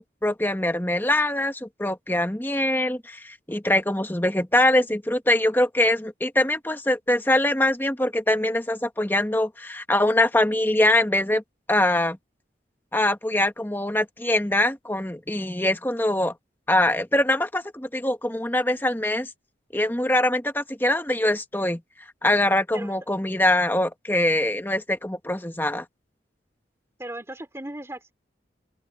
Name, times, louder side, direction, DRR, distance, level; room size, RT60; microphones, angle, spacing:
voice 1, 0.0-11.4 11.7-12.2 12.9-16.3 16.7-19.3 19.7-21.8 22.2-25.8, left 1 dB, 10° left, 1.2 m, -23 dB
voice 2, 27.0-28.1, right 1 dB, 15° right, 2.6 m, -36 dB
open air
head